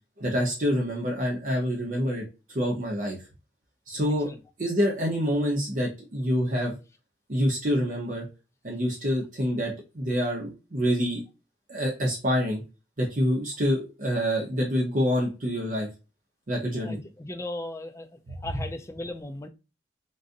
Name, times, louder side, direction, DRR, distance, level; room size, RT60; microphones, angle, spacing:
voice 1, 0.2-2.2 2.5-3.2 3.9-4.3 4.6-6.8 7.3-8.2 8.6-11.2 11.7-12.6 13.0-15.9 16.5-17.0, equal, 45° right, 0.8 m, -26 dB
voice 2, 16.7-19.5, left 1 dB, 15° left, 0.4 m, -37 dB
3.9 x 2.5 x 2.5 m
head